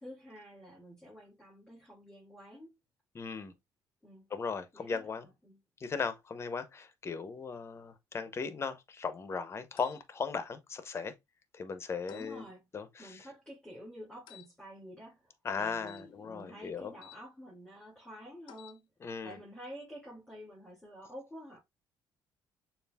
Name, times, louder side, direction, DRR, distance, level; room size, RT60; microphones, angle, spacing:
voice 1, 0.0-2.8 4.0-4.3 4.7-5.6 12.1-12.6 13.0-18.9 19.2-21.6, equal, 5° left, 2.5 m, -49 dB
voice 2, 3.1-3.5 4.3-5.3 5.8-11.1 11.5-12.4 12.7-13.3 15.4-16.9 19.0-19.4, left 5 dB, 35° left, 0.7 m, -37 dB
sound 1, 9.8-10.0 12.1-12.3 14.3-14.5 15.8-17.2 18.4-18.8, left 14 dB, 80° left, 0.5 m, -55 dB
6.8 x 2.4 x 2.2 m
cardioid pair, 110°, 8 cm